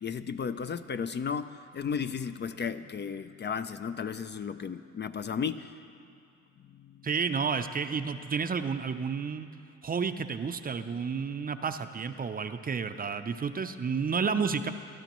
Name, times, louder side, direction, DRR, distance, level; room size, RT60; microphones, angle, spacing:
voice 1, 0.0-5.8 6.7-7.1, left 6 dB, 35° left, 11 dB, 0.4 m, -34 dB
voice 2, 7.0-9.5 9.8-14.7, right 5 dB, 30° right, 9 dB, 0.5 m, -31 dB
21.0 x 12.5 x 3.0 m, 2.4 s
cardioid pair, 90°, 30 cm